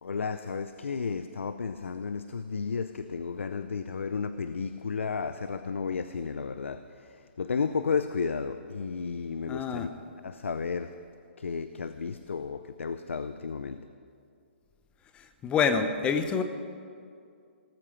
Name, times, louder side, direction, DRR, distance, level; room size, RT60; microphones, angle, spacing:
voice 1, 0.0-9.9 10.2-11.0 11.4-13.8, left 5 dB, 90° left, 11 dB, 0.6 m, -33 dB
voice 2, 9.5-9.9 15.4-16.4, left 6 dB, 15° left, 9 dB, 0.9 m, -26 dB
18.5 x 14.5 x 5.1 m, 2.3 s
hypercardioid pair, 150°, 7 cm